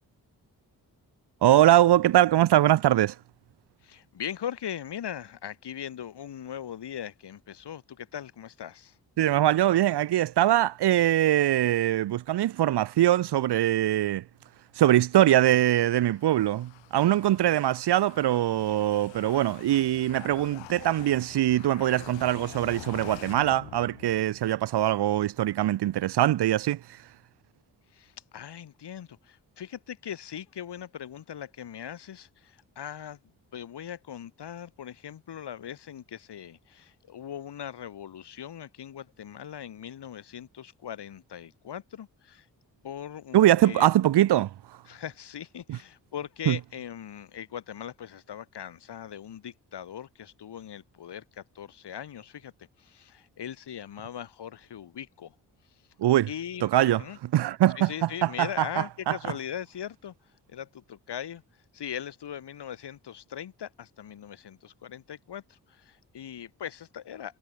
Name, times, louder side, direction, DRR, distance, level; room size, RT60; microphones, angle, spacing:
voice 1, 1.4-3.1 9.2-14.2 14.8-26.8 43.3-44.5 45.7-45.8 46.5-46.6 56.0-56.3 56.6-57.0 57.3-57.9 58.2-59.2, right 13 dB, 65° right, 0.8 m, -22 dB
voice 2, 3.8-9.0 27.9-33.2 33.5-42.5 42.8-43.9 44.9-55.4 56.3-57.2 57.8-60.1 60.5-61.4 61.7-67.4, left 9 dB, 65° left, 2.3 m, -40 dB
sound 1, 15.2-24.6, left 18 dB, 85° left, 1.1 m, -47 dB
hypercardioid pair, 40°, 44 cm